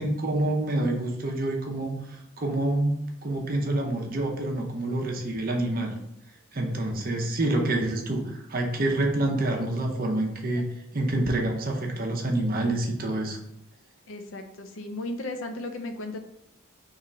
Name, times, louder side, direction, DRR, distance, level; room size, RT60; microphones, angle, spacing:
voice 1, 0.0-5.9 6.5-10.6 10.9-13.4, right 1 dB, 40° right, 1 dB, 0.7 m, -27 dB
voice 2, 14.1-16.2, left 2 dB, 65° left, 6 dB, 0.5 m, -35 dB
3.8 x 3.0 x 4.3 m, 0.78 s
head